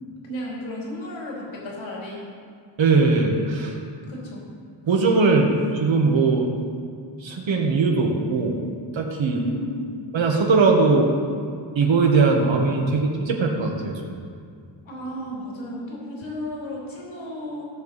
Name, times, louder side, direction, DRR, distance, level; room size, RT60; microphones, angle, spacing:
voice 1, 0.2-2.2 4.1-4.5 9.2-9.9 14.8-17.6, equal, 75° left, -5 dB, 3.2 m, -33 dB
voice 2, 2.8-3.8 4.9-6.5 7.2-8.6 8.9-9.4 10.1-11.1 11.7-14.2, right 4 dB, 70° right, 1 dB, 1.5 m, -20 dB
16.5 x 6.9 x 4.2 m, 2.2 s
wide cardioid pair, 140°, 48 cm